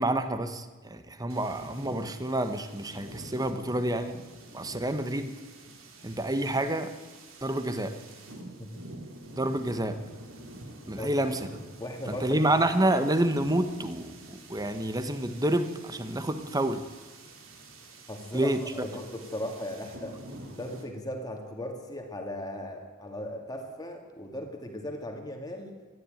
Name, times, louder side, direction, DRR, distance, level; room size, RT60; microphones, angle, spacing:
voice 1, 0.0-4.1 4.5-5.3 6.0-6.9 7.4-7.9 9.3-10.0 10.9-11.4 12.1-16.8 18.3-18.6, right 1 dB, 20° right, 10 dB, 1.4 m, -28 dB
sound 1, 1.3-20.8, right 2 dB, 75° right, 3.4 m, -47 dB
voice 2, 11.8-12.4 18.1-20.2 20.6-25.7, left 1 dB, 20° left, 2 dB, 2.4 m, -37 dB
21.0 x 13.5 x 9.3 m, 1.4 s
head